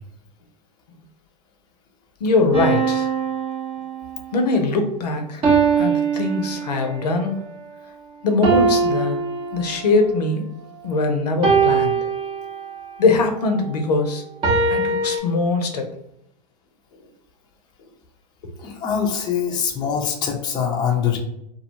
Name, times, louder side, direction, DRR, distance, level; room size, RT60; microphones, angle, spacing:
voice 1, 2.2-3.1 4.3-5.5 5.8-7.4 8.2-9.2 9.5-10.5 10.8-11.9 13.0-14.2 14.7-15.9 18.6-18.7 19.5-19.6, left 3 dB, 75° left, 5 dB, 0.6 m, -21 dB
sound 1, 2.5-4.3 5.4-7.1 8.4-10.1 11.4-12.9 14.4-15.2, right 5 dB, 25° right, 0.7 m, -21 dB
voice 2, 18.6-21.2, left 7 dB, 20° left, 1 dB, 0.5 m, -23 dB
2.4 x 2.2 x 2.9 m, 0.78 s
hypercardioid pair, 110°, 21 cm